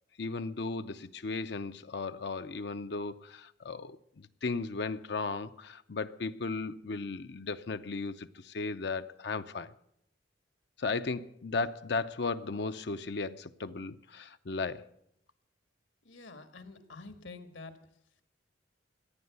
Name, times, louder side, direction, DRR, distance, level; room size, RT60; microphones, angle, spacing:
voice 1, 0.2-9.7 10.8-14.9, left 3 dB, 60° left, 0.6 m, -36 dB
voice 2, 16.0-17.7, left 3 dB, 80° left, 1.8 m, -47 dB
15.0 x 10.5 x 8.0 m
head